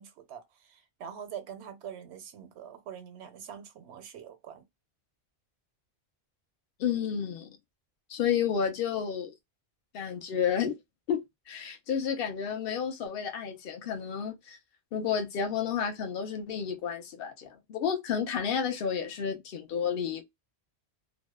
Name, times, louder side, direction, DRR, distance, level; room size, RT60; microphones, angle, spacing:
voice 1, 0.0-4.6, right 8 dB, 85° right, 0.9 m, -44 dB
voice 2, 6.8-7.6 8.1-9.3 9.9-10.8 11.1-14.6 14.9-20.2, left 7 dB, 65° left, 0.8 m, -31 dB
2.6 x 2.1 x 2.2 m
omnidirectional pair, 1.1 m